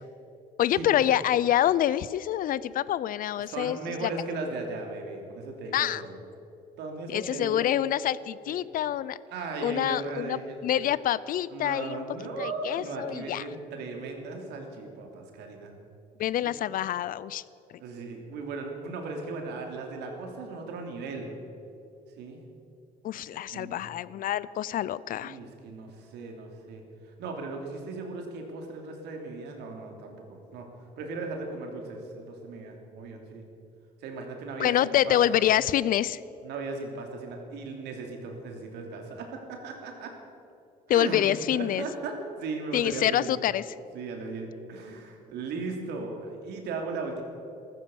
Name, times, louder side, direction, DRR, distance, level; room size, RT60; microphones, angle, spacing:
voice 1, 0.6-4.1 5.7-6.0 7.1-9.2 9.6-12.0 12.4-13.4 16.2-17.4 23.0-25.4 34.6-36.2 40.9-41.9 42.7-43.7, left 11 dB, 55° left, 19 dB, 0.5 m, -26 dB
voice 2, 3.5-6.1 6.8-7.7 8.5-8.6 9.3-10.6 11.5-15.7 16.4-16.5 17.8-21.3 22.2-22.4 23.5-23.7 25.2-26.8 27.2-30.7 31.0-33.4 34.0-35.4 36.4-40.1 40.9-43.3 43.9-47.2, right 3 dB, 80° right, 3 dB, 2.9 m, -37 dB
14.5 x 14.0 x 7.1 m, 2.7 s
cardioid pair, 110°, 17 cm